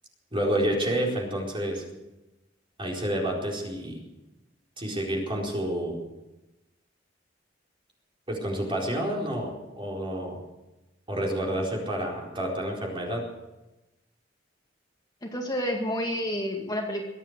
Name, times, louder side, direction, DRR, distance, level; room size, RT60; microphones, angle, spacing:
voice 1, 0.3-1.8 2.8-4.0 4.8-6.0 8.3-10.4 11.1-13.2, right 1 dB, 30° right, -2 dB, 4.4 m, -29 dB
voice 2, 15.2-17.0, equal, 20° left, 0 dB, 2.1 m, -29 dB
23.0 x 9.1 x 6.7 m, 1.0 s
head